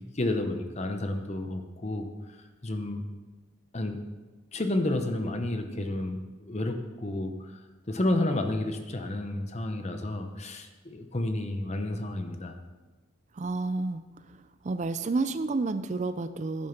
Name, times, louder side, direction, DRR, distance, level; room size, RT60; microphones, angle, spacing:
voice 1, 0.1-2.4 2.6-3.0 3.7-4.0 4.5-7.6 7.9-12.6, left 1 dB, 30° left, 6 dB, 0.7 m, -31 dB
voice 2, 13.4-14.0 14.6-16.7, right 3 dB, 35° right, 12 dB, 0.4 m, -30 dB
11.0 x 6.4 x 5.8 m, 1.2 s
head